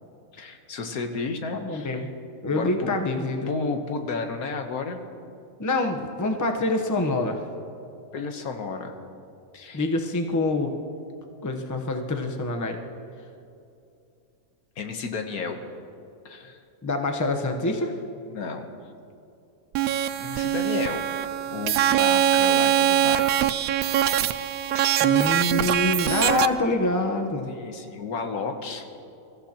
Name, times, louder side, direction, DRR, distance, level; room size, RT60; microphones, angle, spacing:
voice 1, 0.3-2.0 2.5-2.9 3.5-5.0 8.1-8.9 9.5-9.8 14.8-15.6 16.2-16.6 18.3-18.7 20.2-21.1 21.5-23.4 24.7-25.1 27.5-28.9, left 4 dB, 80° left, 5 dB, 1.6 m, -32 dB
voice 2, 1.5-2.1 2.4-3.5 5.6-7.4 9.7-10.7 11.4-12.8 16.8-18.0 24.8-27.5, left 2 dB, 15° left, 3 dB, 0.8 m, -26 dB
sound 1, 19.7-26.5, right 11 dB, 75° right, 1.0 m, -22 dB
23.5 x 14.0 x 2.9 m, 2.6 s
omnidirectional pair, 1.6 m